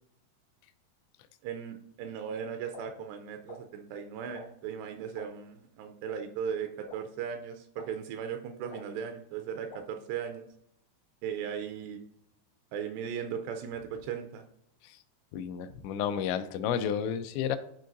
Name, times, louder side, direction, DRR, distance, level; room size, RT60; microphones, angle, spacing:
voice 1, 1.4-10.5 11.2-12.0 12.7-14.4, right 7 dB, 85° right, 6 dB, 2.6 m, -37 dB
sound 1, 2.7-2.8 3.5-3.6 4.3-4.5 5.2-5.3 6.1-6.2 6.9-7.0 7.8-7.9 8.7-8.8 9.7-9.8, left 5 dB, 70° left, 1.7 m, -46 dB
voice 2, 15.3-17.6, left 8 dB, 90° left, 10 dB, 2.8 m, -31 dB
12.0 x 4.6 x 2.6 m, 0.75 s
omnidirectional pair, 4.9 m